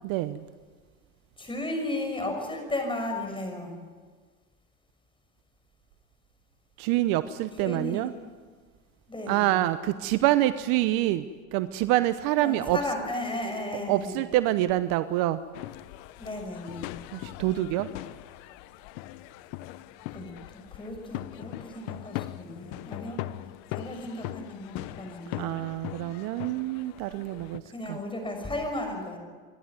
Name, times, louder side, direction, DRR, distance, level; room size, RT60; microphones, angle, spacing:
voice 1, 0.0-0.4 6.8-8.1 9.3-11.2 11.5-12.8 13.9-15.4 17.1-17.9 25.4-27.6 27.9-28.0, right 15 dB, 55° right, 13 dB, 0.9 m, -26 dB
voice 2, 1.4-3.7 7.6-8.1 9.1-9.6 12.4-14.2 16.2-16.9 20.1-23.2 23.7-25.5 27.6-29.2, left 1 dB, 10° left, 3 dB, 6.2 m, -34 dB
sound 1, 15.5-27.6, left 16 dB, 55° left, 0.9 m, -40 dB
26.0 x 12.0 x 9.4 m, 1.5 s
hypercardioid pair, 100°, 43 cm